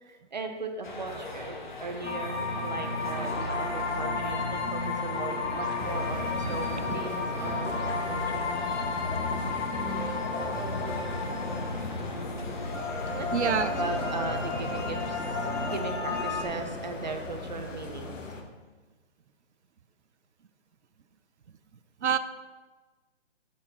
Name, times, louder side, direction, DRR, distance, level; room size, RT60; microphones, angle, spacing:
voice 1, 0.0-8.5 10.4-11.0 13.2-18.2, right 3 dB, 35° right, 5 dB, 0.8 m, -38 dB
sound 1, 0.8-15.8, left 3 dB, 40° left, 0.9 m, -42 dB
sound 2, 2.0-16.4, left 3 dB, 75° left, 2.5 m, -32 dB
sound 3, 5.8-18.4, left 3 dB, 90° left, 1.6 m, -38 dB
voice 2, 13.1-13.7 22.0-22.2, right 7 dB, 65° right, 12 dB, 0.7 m, -28 dB
12.5 x 4.7 x 4.3 m, 1.3 s
hypercardioid pair, 175°, 37 cm